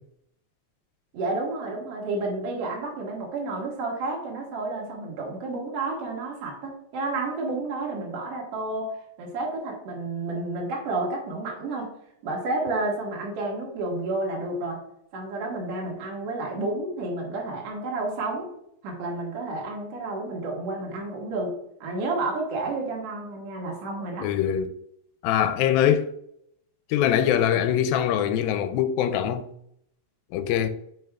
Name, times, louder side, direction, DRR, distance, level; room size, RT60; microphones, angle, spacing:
voice 1, 1.1-11.9 12.2-14.8 15.1-18.5 18.8-24.3, right 2 dB, 55° right, 2.0 m, -31 dB
voice 2, 24.2-24.7 25.2-26.1 26.9-29.5 30.3-30.7, left 10 dB, 80° left, 2.3 m, -23 dB
9.2 x 5.3 x 2.3 m
omnidirectional pair, 4.4 m